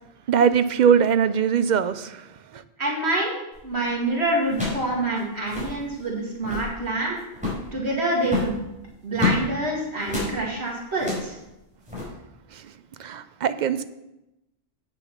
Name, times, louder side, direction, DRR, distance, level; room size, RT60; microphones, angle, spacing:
voice 1, 0.3-2.2 2.5-2.6 13.0-13.8, right 7 dB, 55° right, 12 dB, 0.6 m, -21 dB
voice 2, 2.8-7.2 7.7-8.6 9.0-11.3, right 2 dB, 80° right, -3 dB, 2.5 m, -26 dB
sound 1, 3.5-3.8 4.5-4.9 5.2-5.3 5.4-5.8 6.3-6.7 7.3-7.7 8.2-9.5 10.1-10.4 10.9-11.3 11.9-12.1, left 4 dB, 5° right, 4.4 m, -28 dB
8.9 x 7.0 x 5.8 m, 0.92 s
omnidirectional pair, 1.1 m